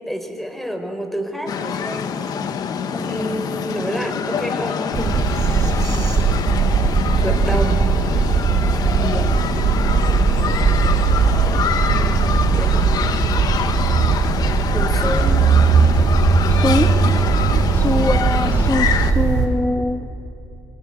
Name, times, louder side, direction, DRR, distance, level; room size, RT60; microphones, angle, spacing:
voice 1, 0.0-2.1 2.9-4.8 5.3-6.2 7.2-7.9 11.4-13.2 14.7-15.4 18.3-18.6, equal, 5° left, 7 dB, 4.3 m, -29 dB
sound 1, 1.5-19.1, left 7 dB, 75° left, 1.7 m, -25 dB
voice 2, 2.9-3.4 4.6-5.2 5.5-5.7 8.8-9.3 16.5-16.9 17.7-20.1, left 2 dB, 25° left, 6 dB, 1.6 m, -24 dB
sound 2, 4.9-19.5, right 5 dB, 75° right, 5.1 m, -18 dB
29.5 x 25.0 x 7.9 m, 2.8 s
cardioid pair, 80°, 7 cm